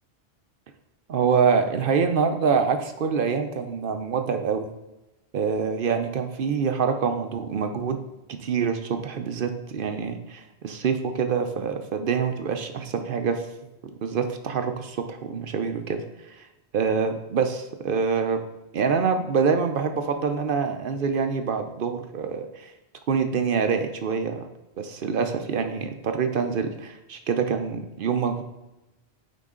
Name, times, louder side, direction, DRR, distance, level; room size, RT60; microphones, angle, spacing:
voice 1, 1.1-4.7 5.3-8.0 8.3-13.4 14.0-16.3 16.7-18.4 18.7-22.7 23.1-24.5 24.8-28.4, right 6 dB, 60° right, 7 dB, 0.7 m, -25 dB
9.3 x 3.7 x 3.7 m, 0.98 s
omnidirectional pair, 1.2 m